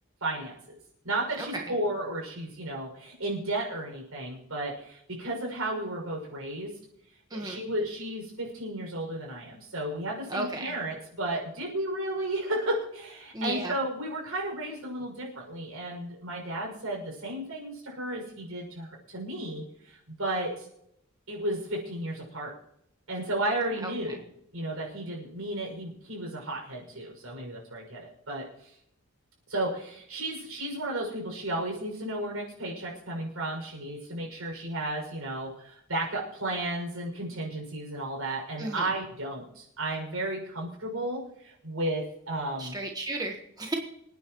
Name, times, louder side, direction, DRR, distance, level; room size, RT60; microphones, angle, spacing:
voice 1, 0.2-0.8 1.0-6.7 7.3-20.7 21.3-22.5 23.1-24.2 24.5-28.7 29.5-42.7, right 1 dB, 80° right, -1 dB, 6.3 m, -33 dB
voice 2, 7.3-7.6 10.3-10.7 13.3-13.7 38.6-38.9 42.6-43.7, right 2 dB, 20° right, 2 dB, 1.3 m, -33 dB
27.0 x 9.8 x 3.1 m, 0.76 s
head